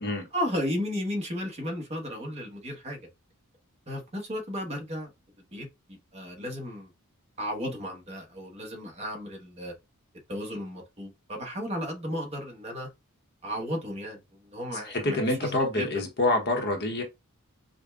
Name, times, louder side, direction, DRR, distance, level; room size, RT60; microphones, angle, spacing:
voice 1, 0.3-3.0 3.9-5.1 5.5-6.9 7.4-9.7 10.3-12.9 13.4-15.9, equal, 30° right, 1.0 m, -34 dB
voice 2, 14.7-17.0, left 2 dB, 50° left, 0.9 m, -27 dB
5.0 x 2.2 x 2.3 m
head